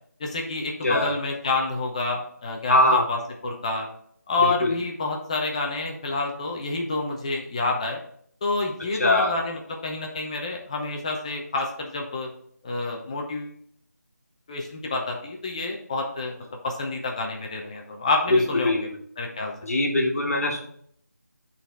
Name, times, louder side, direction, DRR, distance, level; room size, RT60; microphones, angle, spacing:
voice 1, 0.2-3.9 4.3-8.0 8.4-12.3 12.6-13.5 14.5-16.3 16.6-18.8 19.2-19.5, left 3 dB, 20° left, 1 dB, 0.8 m, -28 dB
voice 2, 2.7-3.0 4.4-4.7 9.0-9.3 18.3-18.8 19.6-20.6, left 1 dB, 55° left, 0 dB, 1.6 m, -21 dB
9.0 x 4.1 x 3.3 m, 0.64 s
figure-of-eight pair, 160°, 9 cm